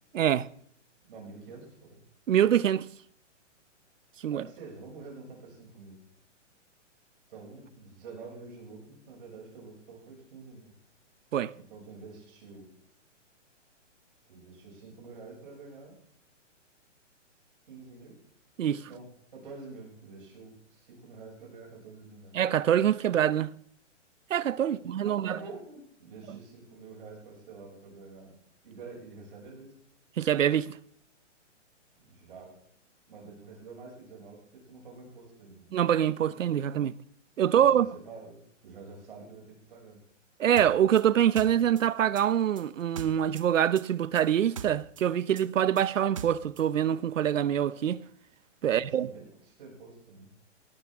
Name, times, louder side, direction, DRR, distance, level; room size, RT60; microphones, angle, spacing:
voice 1, 0.1-0.5 2.3-2.9 4.2-4.5 11.3-11.5 18.6-18.9 22.3-23.5 24.3-25.4 30.2-30.8 35.7-36.9 37.4-37.9 40.4-48.0 48.6-49.1, right 10 dB, 85° right, 0.9 m, -25 dB
voice 2, 1.0-2.0 4.3-6.0 7.3-10.7 11.5-12.7 14.3-15.9 17.7-18.2 18.8-22.3 24.7-28.4 28.6-29.7 32.0-32.5 33.1-35.7 37.5-40.0 48.6-50.3, right 4 dB, 45° right, 6.7 m, -47 dB
sound 1, 40.6-43.5 43.7-46.7, right 7 dB, 25° right, 0.8 m, -42 dB
19.0 x 14.5 x 3.6 m
hypercardioid pair, 180°, 37 cm